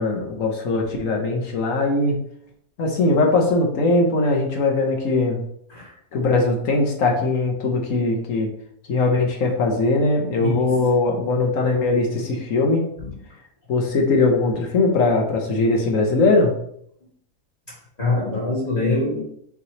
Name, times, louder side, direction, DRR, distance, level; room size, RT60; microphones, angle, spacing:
voice 1, 0.0-2.2 2.8-5.4 6.1-8.5 8.9-12.8 13.7-16.5, left 3 dB, 60° left, 1 dB, 1.1 m, -20 dB
voice 2, 10.4-10.8 13.0-13.1 18.0-19.2, left 2 dB, 25° left, -9 dB, 1.8 m, -24 dB
5.7 x 3.1 x 2.8 m, 0.70 s
omnidirectional pair, 1.7 m